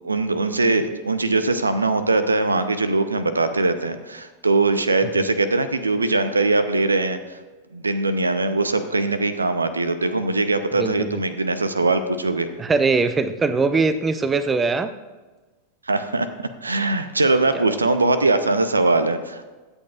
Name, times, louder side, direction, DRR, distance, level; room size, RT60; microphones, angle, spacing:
voice 1, 0.0-7.4 7.7-12.5 15.9-19.5, right 3 dB, 80° right, 11 dB, 0.7 m, -21 dB
voice 2, 10.8-11.2 12.6-14.9 17.5-17.8, right 4 dB, 15° right, 12 dB, 0.6 m, -21 dB
23.0 x 8.0 x 2.5 m, 1.3 s
figure-of-eight pair, 90°, 0 cm